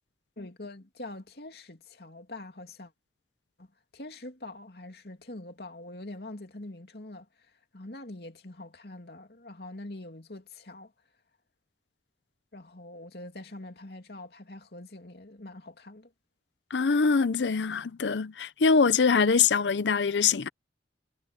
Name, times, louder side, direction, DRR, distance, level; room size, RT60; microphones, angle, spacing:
voice 1, 0.4-2.9 3.6-3.7 3.9-10.9 12.5-16.1, left 2 dB, 60° left, 2.8 m, -44 dB
voice 2, 16.7-20.5, left 5 dB, 85° left, 0.6 m, -23 dB
head